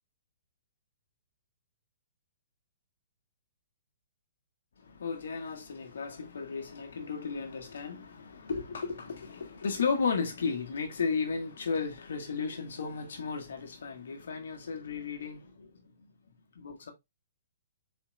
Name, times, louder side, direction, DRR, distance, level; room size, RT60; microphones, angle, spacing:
voice 1, 4.8-15.9 16.5-16.9, left 5 dB, 65° left, 1.3 m, -34 dB
4.4 x 3.5 x 3.1 m
figure-of-eight pair, 120°, 0 cm